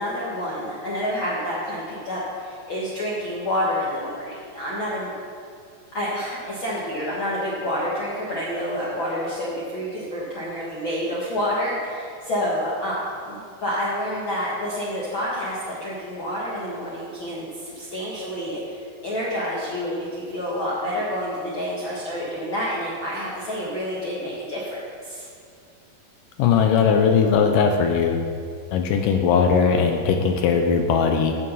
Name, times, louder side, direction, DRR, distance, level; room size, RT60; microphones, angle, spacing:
voice 1, 0.0-5.1 5.9-25.3, equal, 55° left, -7 dB, 1.4 m, -28 dB
voice 2, 26.4-28.2 28.7-31.3, left 6 dB, 75° left, 4 dB, 2.0 m, -19 dB
14.0 x 5.8 x 5.4 m, 2.3 s
omnidirectional pair, 4.3 m